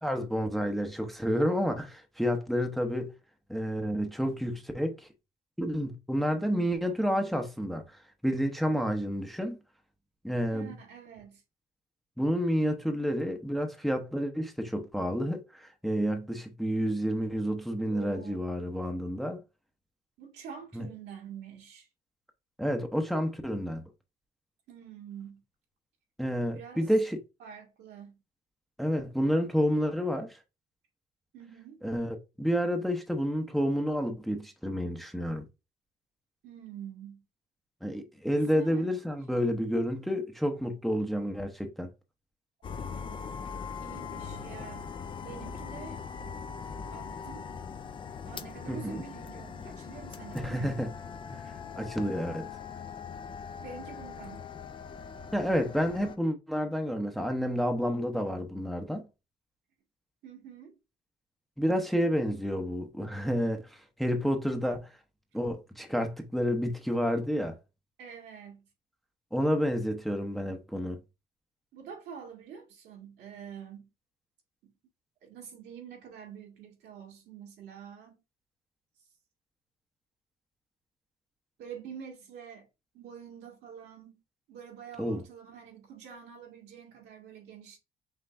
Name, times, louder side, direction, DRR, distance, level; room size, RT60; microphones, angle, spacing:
voice 1, 0.0-3.1 3.5-5.1 5.6-9.6 10.2-10.7 12.2-19.4 20.7-20.9 22.6-23.8 26.2-27.2 28.8-30.4 31.8-35.4 37.8-41.9 48.7-49.0 50.3-50.9 51.3-52.5 55.3-59.1 61.6-65.0 65.3-67.6 69.3-71.0 85.0-85.2, equal, ahead, 0.7 m, -30 dB
voice 2, 10.5-11.4 17.9-18.4 20.2-21.9 24.7-25.4 26.4-26.9 27.4-28.2 31.3-31.8 36.4-37.2 38.3-38.9 43.8-44.9 45.2-46.0 46.9-47.5 48.3-50.8 53.6-54.5 60.2-60.7 68.0-68.7 71.7-73.9 74.6-74.7 75.2-78.2 81.6-82.7 82.9-84.2 84.5-87.8, right 7 dB, 80° right, 2.0 m, -46 dB
sound 1, 42.6-56.2, left 6 dB, 30° left, 0.4 m, -41 dB
5.5 x 3.1 x 2.5 m
cardioid pair, 110°, 17 cm